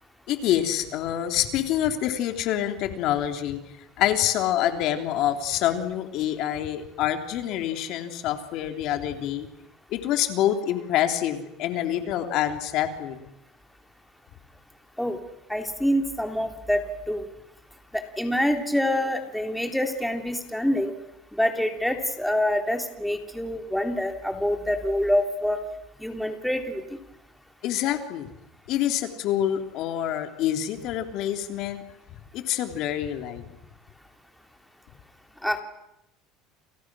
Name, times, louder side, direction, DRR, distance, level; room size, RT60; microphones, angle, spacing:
voice 1, 0.3-3.6 4.0-9.5 9.9-13.3 27.6-28.3 28.7-31.8 32.3-33.5, left 11 dB, 60° left, 6 dB, 3.2 m, -26 dB
voice 2, 15.5-17.3 17.9-20.9 21.3-25.6 26.0-26.8 35.4-35.6, left 1 dB, ahead, 5 dB, 3.1 m, -26 dB
29.5 x 29.0 x 6.3 m, 0.84 s
supercardioid pair, 125°, 0 cm